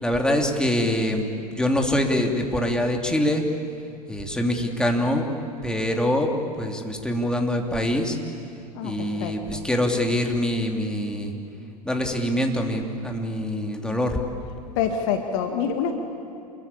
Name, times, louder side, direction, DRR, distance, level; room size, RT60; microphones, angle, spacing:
voice 1, 0.0-1.3 1.5-3.4 4.1-5.3 5.6-8.2 8.8-11.3 11.8-14.2, left 1 dB, 5° left, 2 dB, 2.9 m, -24 dB
voice 2, 8.7-9.6 14.8-15.9, left 7 dB, 50° left, 5 dB, 2.1 m, -27 dB
28.0 x 22.0 x 8.6 m, 2.6 s
figure-of-eight pair, 85°, 21 cm